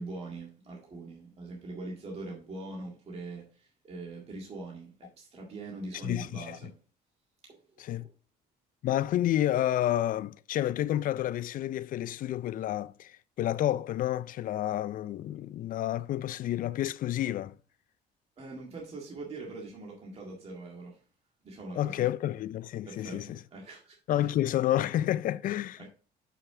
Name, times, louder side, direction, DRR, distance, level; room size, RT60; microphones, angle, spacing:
voice 1, 0.0-6.7 7.4-8.1 18.4-21.0 21.4-22.1 22.8-24.3 25.8-25.9, right 2 dB, 35° right, 1.9 m, -42 dB
voice 2, 6.0-6.6 7.8-8.1 8.8-17.5 21.8-23.4 24.1-25.9, left 13 dB, 55° left, 0.4 m, -30 dB
7.0 x 5.8 x 3.6 m
cardioid pair, 110°, 17 cm